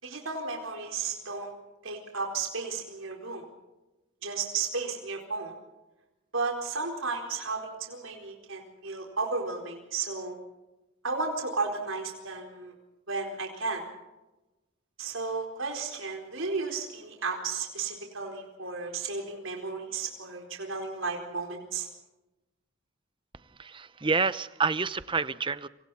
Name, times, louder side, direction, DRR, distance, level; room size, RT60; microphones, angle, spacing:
voice 1, 0.0-1.5 1.8-3.4 4.2-5.5 6.3-10.4 11.0-12.7 13.1-13.8 15.0-21.9, right 4 dB, 75° right, 1 dB, 4.4 m, -33 dB
voice 2, 23.6-25.7, right 4 dB, 25° right, 14 dB, 0.7 m, -28 dB
28.5 x 26.0 x 4.3 m, 1.0 s
head